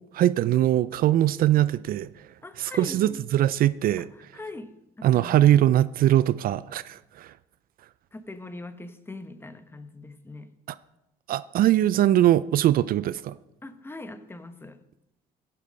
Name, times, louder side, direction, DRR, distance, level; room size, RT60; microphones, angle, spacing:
voice 1, 0.1-2.1 2.6-4.1 5.0-7.3 10.7-10.8 11.3-13.3, right 13 dB, 60° right, 0.4 m, -21 dB
voice 2, 2.4-3.2 4.0-5.7 8.1-10.5 13.6-14.8, left 2 dB, 15° left, 0.9 m, -42 dB
15.0 x 8.5 x 5.2 m
cardioid pair, 110°, 17 cm